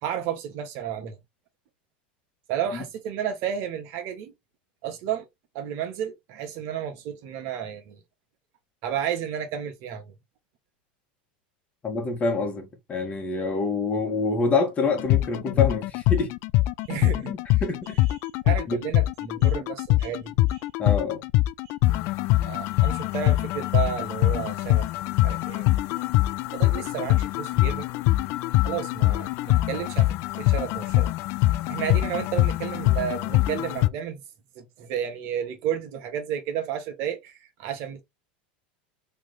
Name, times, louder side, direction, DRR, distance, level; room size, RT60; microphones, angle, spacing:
voice 1, 0.0-1.2 2.5-4.3 4.8-5.3 5.5-8.0 8.8-10.1 16.8-17.3 18.1-20.6 21.6-21.8 22.4-24.8 25.2-25.7 26.5-27.9 28.6-31.1 31.7-34.2 34.5-38.0, right 9 dB, 55° right, 1.2 m, -32 dB
voice 2, 11.8-16.3 17.2-18.0 18.7-18.8 20.8-21.2, left 4 dB, 30° left, 1.5 m, -26 dB
sound 1, 15.0-33.9, left 17 dB, 55° left, 0.3 m, -23 dB
3.3 x 3.1 x 3.8 m
supercardioid pair, 110°, 5 cm